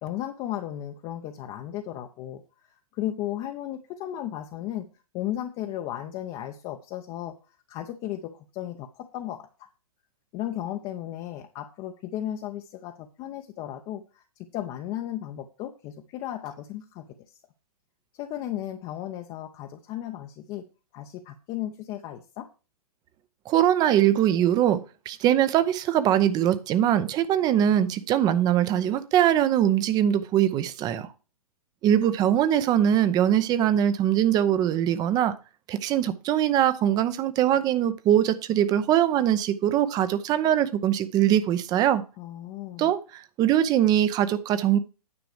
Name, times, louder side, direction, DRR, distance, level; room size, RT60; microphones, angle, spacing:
voice 1, 0.0-2.4 2.7-4.8 5.1-7.3 7.7-9.7 10.3-14.2 14.5-17.3 18.2-20.6 20.9-22.5 42.2-42.9, left 12 dB, 25° left, 4 dB, 0.8 m, -35 dB
voice 2, 23.5-31.1 31.8-35.3 35.7-42.0 42.8-44.8, right 11 dB, 20° right, 14 dB, 0.7 m, -22 dB
9.6 x 6.0 x 4.9 m, 0.33 s
figure-of-eight pair, 120°, 19 cm